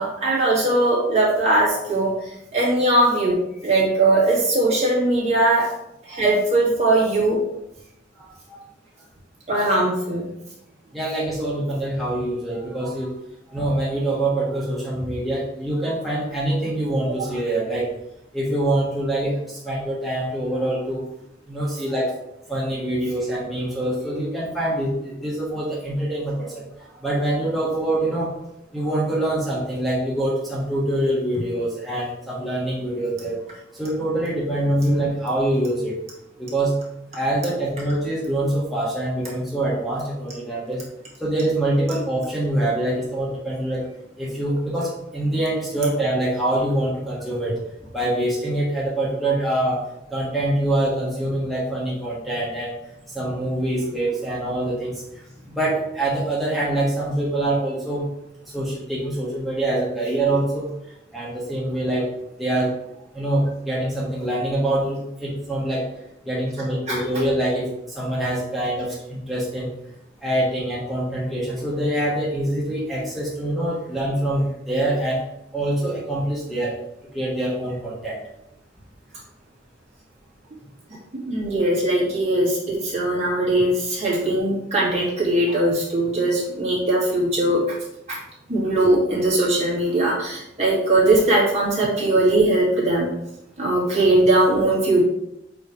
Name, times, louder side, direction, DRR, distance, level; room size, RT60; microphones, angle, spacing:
voice 1, 0.0-2.1 2.5-5.7 6.1-7.4 9.5-10.3 66.9-67.0 81.2-87.6 88.1-88.2 88.5-93.1 93.6-95.0, right 2 dB, 40° right, -5 dB, 2.4 m, -20 dB
voice 2, 8.2-8.6 10.9-13.1 13.5-17.9 18.3-21.0 21.5-22.1 22.5-26.6 27.0-28.3 28.7-33.4 33.8-36.0 36.4-36.8 37.1-40.8 41.2-43.8 44.2-47.6 47.9-49.8 50.1-52.7 53.1-55.0 55.5-58.1 58.5-60.7 61.1-62.1 62.4-62.7 63.1-65.9 66.2-67.7 67.9-69.7 70.2-75.2 75.5-76.8 77.1-78.2, right 1 dB, ahead, -8 dB, 1.4 m, -24 dB
7.6 x 3.3 x 4.7 m, 0.83 s
head